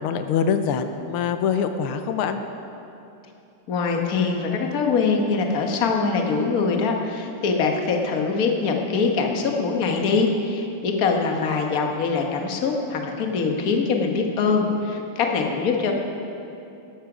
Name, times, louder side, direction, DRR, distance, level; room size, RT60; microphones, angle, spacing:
voice 1, 0.0-2.4, left 7 dB, 85° left, 8 dB, 1.6 m, -24 dB
voice 2, 3.7-15.9, left 4 dB, 45° left, 2 dB, 1.5 m, -23 dB
14.0 x 12.0 x 5.0 m, 2.8 s
omnidirectional pair, 2.4 m